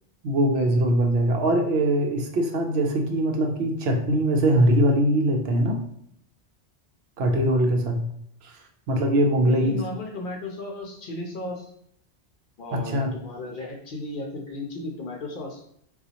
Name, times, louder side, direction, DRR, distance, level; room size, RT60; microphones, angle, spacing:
voice 1, 0.2-5.8 7.2-8.0 8.4-8.6 8.9-9.8 12.7-13.1, right 1 dB, 70° right, 3 dB, 0.8 m, -22 dB
voice 2, 9.4-11.7 12.6-15.6, left 2 dB, 60° left, 1 dB, 0.7 m, -34 dB
3.8 x 2.4 x 2.7 m, 0.70 s
omnidirectional pair, 1.2 m